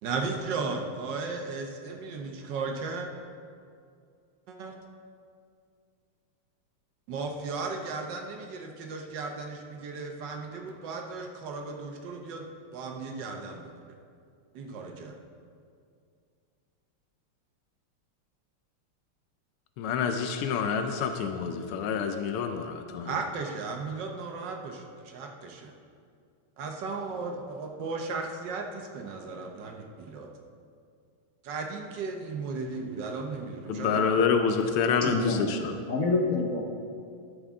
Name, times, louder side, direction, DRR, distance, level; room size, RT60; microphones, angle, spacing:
voice 1, 0.0-3.1 4.5-4.7 7.1-12.4 12.7-13.6 14.5-15.1 23.0-25.7 26.6-30.3 31.4-34.2, right 4 dB, 65° right, 3 dB, 1.3 m, -35 dB
voice 2, 19.8-23.1 33.7-35.7, left 6 dB, 85° left, 6 dB, 1.5 m, -27 dB
voice 3, 35.0-35.5 35.9-36.6, left 3 dB, 60° left, 1 dB, 0.8 m, -27 dB
12.5 x 7.3 x 3.6 m, 2.3 s
omnidirectional pair, 2.4 m